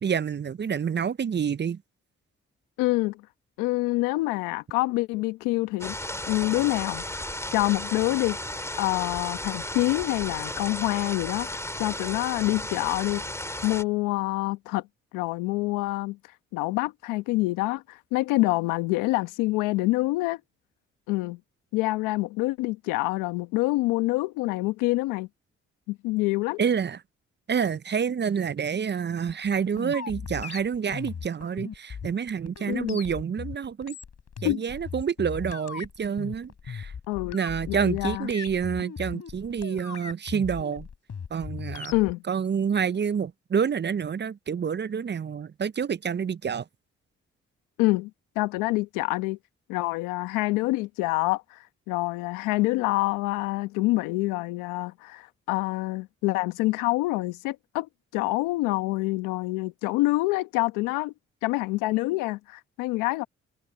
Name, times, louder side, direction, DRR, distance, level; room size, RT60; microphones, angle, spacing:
voice 1, 0.0-1.8 26.6-27.0 27.5-34.0 34.4-36.9 37.3-40.9 41.3-42.0 42.3-46.7, right 7 dB, 35° right, 0.6 m, -28 dB
voice 2, 2.8-3.2 3.6-5.9 6.3-7.0 7.5-8.4 8.8-11.5 11.8-13.2 13.6-14.8 15.1-16.2 16.5-20.4 21.1-21.4 21.7-25.3 25.9-26.6 32.7-33.0 34.4-34.6 37.1-37.4 37.7-38.3 41.9-42.2 47.8-48.1 48.3-49.4 49.7-61.1 61.4-63.2, left 21 dB, 90° left, 1.2 m, -26 dB
sound 1, 5.8-13.8, left 1 dB, 10° left, 3.4 m, -34 dB
sound 2, 29.3-42.1, left 6 dB, 55° left, 5.0 m, -38 dB
hypercardioid pair, 40°, 31 cm